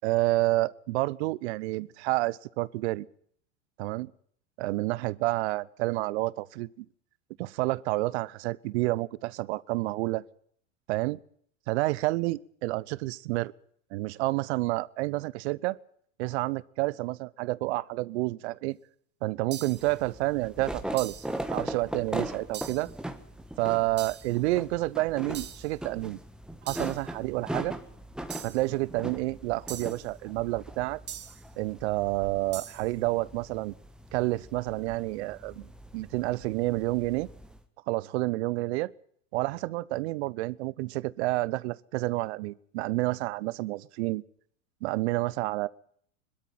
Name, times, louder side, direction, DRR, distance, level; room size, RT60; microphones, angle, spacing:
voice 1, 0.0-3.1 3.8-4.1 4.6-6.9 7.4-10.2 10.9-11.2 11.7-13.5 13.9-15.8 16.2-18.8 19.2-22.9 23.6-26.2 26.6-27.7 28.4-31.0 31.6-33.7 34.1-37.3 37.9-38.9 39.3-44.2 44.8-45.7, right 20 dB, 60° right, 0.9 m, -29 dB
sound 1, 19.5-20.0 21.0-21.4 22.5-22.9 24.0-24.4 25.3-25.7 26.7-27.1 28.3-28.7 29.7-30.1 31.1-31.5 32.5-32.9, right 10 dB, 30° right, 1.5 m, -42 dB
sound 2, 19.7-37.6, right 1 dB, ahead, 1.5 m, -40 dB
21.5 x 13.0 x 9.3 m
hypercardioid pair, 110°, 37 cm